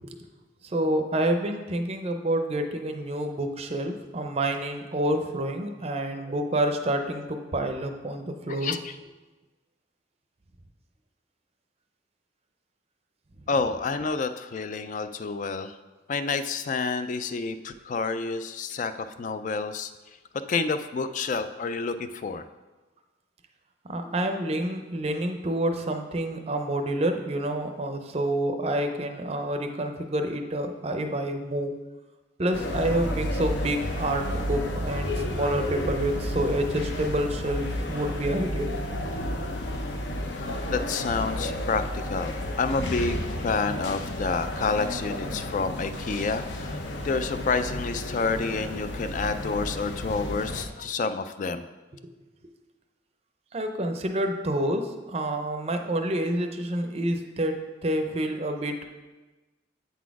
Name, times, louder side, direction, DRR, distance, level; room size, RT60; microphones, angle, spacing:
voice 1, 0.6-8.7 23.9-31.8 32.4-38.7 53.5-57.6 57.8-58.9, right 1 dB, 30° right, 5 dB, 0.5 m, -28 dB
voice 2, 8.5-8.9 13.5-15.7 16.1-19.9 20.5-22.4 40.7-51.6, left 4 dB, 40° left, 10 dB, 0.3 m, -29 dB
sound 1, 32.5-50.7, left 1 dB, 65° left, 0.7 m, -32 dB
8.2 x 4.1 x 4.7 m, 1.2 s
head